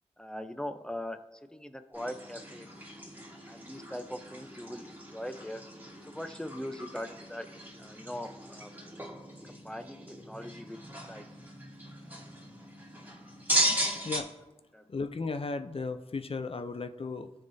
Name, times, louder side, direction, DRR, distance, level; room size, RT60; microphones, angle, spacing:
voice 1, 0.2-1.2 1.5-2.7 3.5-5.6 6.1-7.5 7.8-8.7 9.5-10.8 11.1-11.3 14.7-14.9, left 1 dB, 5° left, 9 dB, 0.7 m, -40 dB
sound 1, 1.9-14.2, equal, 15° right, 2.5 m, -37 dB
voice 2, 13.6-14.3 14.9-17.3, left 4 dB, 55° left, 9 dB, 0.6 m, -36 dB
16.5 x 5.7 x 2.7 m, 1.1 s
cardioid pair, 45°, 12 cm